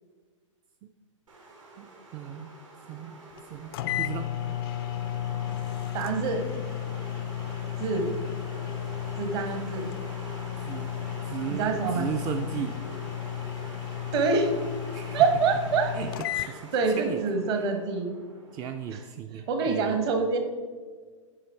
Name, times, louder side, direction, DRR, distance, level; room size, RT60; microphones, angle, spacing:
sound 1, 1.3-19.0, right 2 dB, 75° right, 2.5 m, -45 dB
voice 1, 1.8-2.5 2.9-3.2 3.5-4.3 10.6-10.9 11.3-12.7 14.9-15.3 15.9-16.7 17.0-17.2 18.5-20.0, right 8 dB, 25° right, 7 dB, 0.4 m, -36 dB
sound 2, 3.4-3.5 3.7-16.5, left 12 dB, 45° left, 0.4 m, -34 dB
voice 2, 5.9-6.4 7.8-8.1 9.2-9.9 11.5-12.1 14.1-14.5 15.1-15.9 16.4-18.1 18.9-19.0 19.5-20.4, right 4 dB, 50° right, 6 dB, 1.6 m, -26 dB
9.7 x 5.2 x 4.4 m, 1.5 s
figure-of-eight pair, 105°, 17 cm